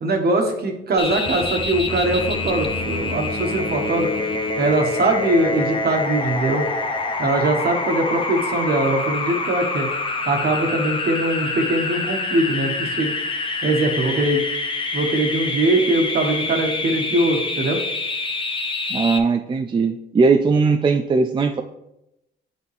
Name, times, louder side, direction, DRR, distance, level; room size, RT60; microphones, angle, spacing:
voice 1, 0.0-4.1 4.6-6.7 7.2-9.9 10.3-13.1 13.6-14.4 14.9-17.8, right 2 dB, 50° right, 3 dB, 1.5 m, -21 dB
sound 1, 1.0-19.2, left 3 dB, 25° left, 0.9 m, -26 dB
voice 2, 18.9-21.6, right 4 dB, 25° right, 6 dB, 0.4 m, -19 dB
9.7 x 4.2 x 3.4 m, 0.86 s
cardioid pair, 90°, 20 cm